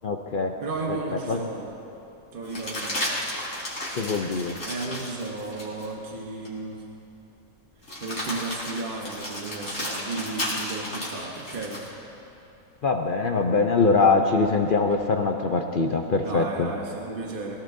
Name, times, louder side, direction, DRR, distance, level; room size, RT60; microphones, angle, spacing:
voice 1, 0.0-0.5 1.3-1.4 3.9-4.6 12.8-16.7, left 4 dB, 65° left, 3 dB, 0.5 m, -23 dB
voice 2, 0.6-1.7 2.3-3.1 4.6-6.9 8.0-11.9 16.2-17.6, right 3 dB, 40° right, 0 dB, 1.1 m, -34 dB
sound 1, 0.9-1.0 2.4-5.9 6.4-6.6 7.8-11.9 14.1-15.0, left 1 dB, 45° left, 4.0 m, -33 dB
22.0 x 18.0 x 2.7 m, 2.9 s
omnidirectional pair, 1.7 m